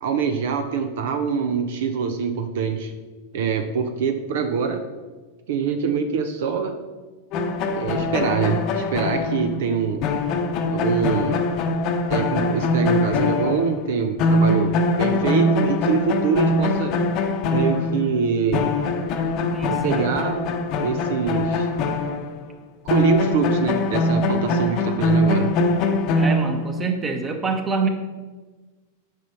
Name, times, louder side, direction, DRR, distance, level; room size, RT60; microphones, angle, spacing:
voice 1, 0.0-2.9 3.3-4.8 5.5-6.8 7.7-10.0 10.7-11.4 12.1-16.9 17.5-18.7 19.7-20.5 20.8-21.7 22.8-25.5, right 6 dB, 55° right, 8 dB, 0.7 m, -24 dB
sound 1, 7.3-13.9 14.2-22.4 22.9-26.8, left 2 dB, 40° left, 0.9 m, -23 dB
voice 2, 19.5-20.0 26.1-27.9, right 4 dB, 20° right, 5 dB, 1.2 m, -26 dB
9.2 x 5.4 x 5.5 m, 1.3 s
figure-of-eight pair, 90°, 0 cm